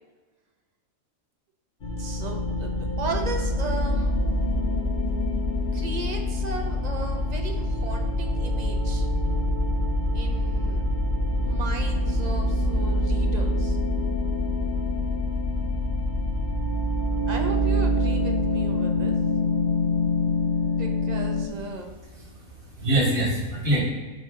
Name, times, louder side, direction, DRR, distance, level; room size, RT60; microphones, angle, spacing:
sound 1, 1.8-21.4, left 1 dB, 45° left, 1.0 m, -25 dB
voice 1, 2.0-4.7 5.7-9.1 10.1-10.8 11.4-13.8 17.3-19.1 20.7-21.9, right 3 dB, 40° right, 3 dB, 0.7 m, -36 dB
voice 2, 22.0-23.8, right 1 dB, 80° right, -5 dB, 2.7 m, -25 dB
7.2 x 4.2 x 3.7 m, 1.3 s
omnidirectional pair, 1.4 m